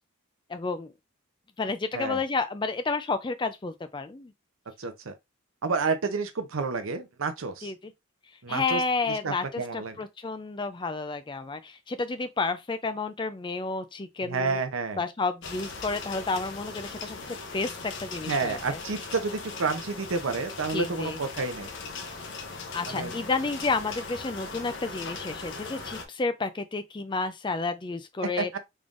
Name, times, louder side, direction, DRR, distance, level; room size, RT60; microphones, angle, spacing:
voice 1, 0.5-0.9 1.6-4.3 7.6-7.9 8.5-14.6 15.0-18.8 20.7-21.2 22.7-28.5, left 3 dB, 20° left, 0.4 m, -31 dB
voice 2, 4.8-5.1 5.6-7.7 8.4-8.8 9.2-9.9 14.2-15.0 18.3-21.7 22.9-23.1 28.4-28.5, right 4 dB, 70° right, 0.7 m, -30 dB
sound 1, 15.4-26.1, left 4 dB, 55° left, 0.7 m, -39 dB
3.6 x 3.3 x 2.5 m
head